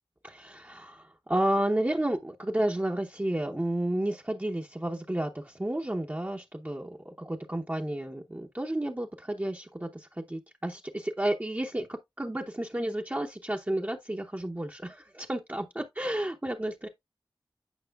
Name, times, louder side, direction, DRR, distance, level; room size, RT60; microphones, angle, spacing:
voice 1, 0.2-16.9, right 1 dB, 20° right, 0.9 m, -31 dB
9.1 x 4.9 x 2.3 m
wide cardioid pair, 45°, 9 cm